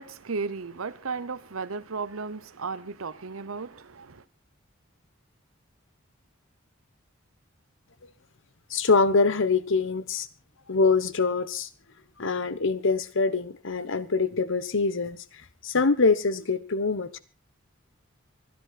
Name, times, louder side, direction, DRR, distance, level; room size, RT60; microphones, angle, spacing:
voice 1, 0.0-4.2, right 4 dB, 75° right, 0.9 m, -35 dB
voice 2, 8.7-10.3 10.7-11.7 12.2-15.2 15.6-17.2, left 4 dB, 65° left, 1.2 m, -24 dB
25.0 x 10.5 x 4.2 m
head